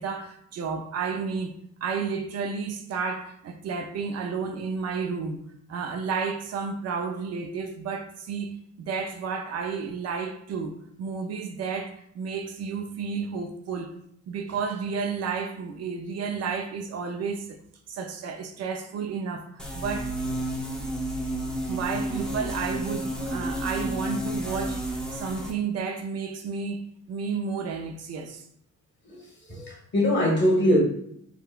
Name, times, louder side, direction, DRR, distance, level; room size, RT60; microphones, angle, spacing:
voice 1, 0.0-1.5 1.8-5.4 5.7-8.5 8.8-14.0 14.3-17.6 17.9-20.1 20.7-21.0 21.7-28.4, right 5 dB, 55° right, 0.4 m, -32 dB
sound 1, 19.6-25.5, right 1 dB, 5° left, 0.5 m, -31 dB
voice 2, 29.5-30.8, left 1 dB, 35° left, 1.2 m, -22 dB
3.7 x 2.1 x 2.3 m
cardioid pair, 90°, 30 cm